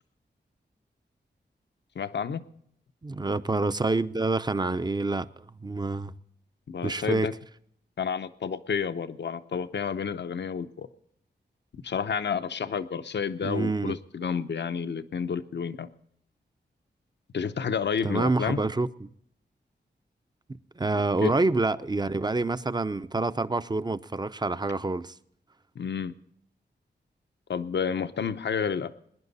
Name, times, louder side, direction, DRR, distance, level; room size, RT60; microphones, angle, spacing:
voice 1, 2.0-2.4 6.7-7.3 8.0-10.9 11.7-15.9 17.3-18.6 21.2-21.3 25.8-26.1 27.5-28.9, left 6 dB, 70° left, 0.8 m, -30 dB
voice 2, 3.0-6.1 6.8-7.3 13.4-13.9 18.0-19.1 20.8-25.1, right 3 dB, 20° right, 0.6 m, -27 dB
21.5 x 10.5 x 4.1 m
wide cardioid pair, 70°, 19 cm